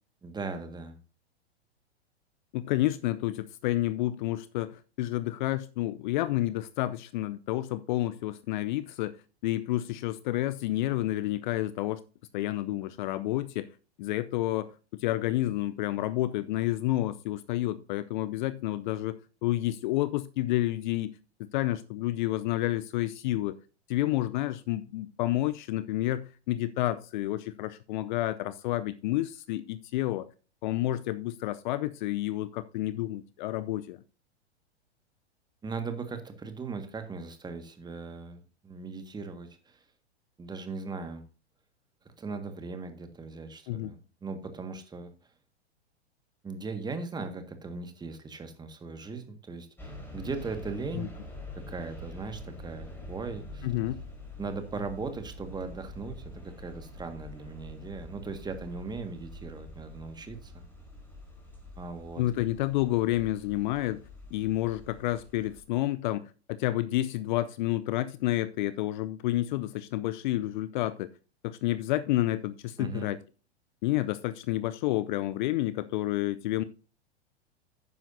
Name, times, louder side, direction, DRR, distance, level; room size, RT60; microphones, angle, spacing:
voice 1, 0.2-1.0 35.6-39.8 40.4-41.2 42.2-45.1 46.4-51.1 51.5-53.7 54.4-60.5 61.8-62.2 72.8-73.1, right 4 dB, 15° right, 1.7 m, -38 dB
voice 2, 2.5-9.1 9.4-12.0 12.3-13.7 14.0-21.1 21.5-23.6 23.9-30.3 30.6-34.0 43.7-43.9 50.9-51.1 53.6-54.0 62.2-64.0 64.3-71.1 71.4-73.2 73.8-76.6, left 15 dB, 45° left, 0.6 m, -30 dB
sound 1, 49.8-65.6, left 1 dB, 5° left, 4.2 m, -46 dB
11.5 x 9.4 x 2.7 m
figure-of-eight pair, 100°, 33 cm